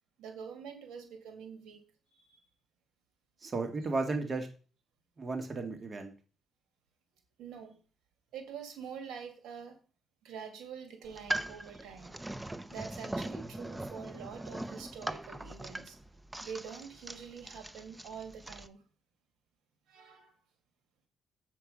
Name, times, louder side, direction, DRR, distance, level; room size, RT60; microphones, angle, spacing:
voice 1, 0.2-1.8 2.1-2.4 7.4-7.8 8.3-9.8 10.2-12.2 12.7-16.0 16.4-18.8 19.9-20.3, right 6 dB, 85° right, 2.3 m, -46 dB
voice 2, 3.4-4.5 5.2-6.1, right 3 dB, 35° right, 1.9 m, -34 dB
sound 1, 11.0-18.7, right 1 dB, 10° right, 0.6 m, -41 dB
7.8 x 7.0 x 5.1 m
cardioid pair, 90°, 0 cm